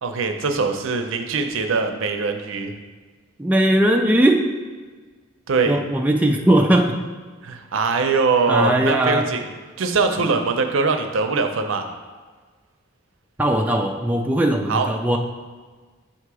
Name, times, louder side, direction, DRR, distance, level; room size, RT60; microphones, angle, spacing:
voice 1, 0.0-2.7 5.5-5.8 7.4-9.5 9.8-11.9 14.7-14.9, right 4 dB, 70° right, 5 dB, 0.6 m, -22 dB
voice 2, 3.4-4.5 5.7-7.0 8.5-9.3 10.2-10.3 13.4-15.2, right 1 dB, 10° right, 1 dB, 0.3 m, -19 dB
7.3 x 2.9 x 4.7 m, 1.4 s
head